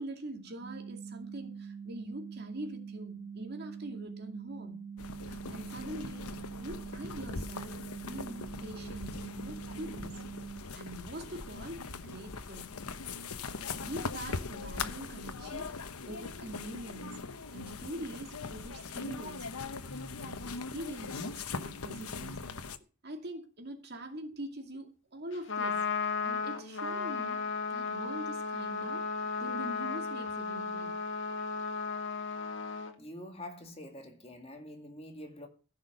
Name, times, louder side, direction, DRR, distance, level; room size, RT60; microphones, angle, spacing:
voice 1, 0.0-4.9 5.3-10.2 10.5-12.7 13.8-19.6 19.9-22.5 23.0-27.4 27.7-31.0, right 1 dB, 45° right, 2.4 m, -44 dB
sound 1, 0.6-10.6, right 6 dB, 10° left, 3.5 m, -44 dB
sound 2, 5.0-22.8, left 4 dB, 90° left, 1.0 m, -41 dB
Trumpet, 25.3-32.9, left 4 dB, 55° left, 1.8 m, -35 dB
voice 2, 33.0-35.5, left 1 dB, 25° left, 2.0 m, -46 dB
15.5 x 6.1 x 6.7 m
head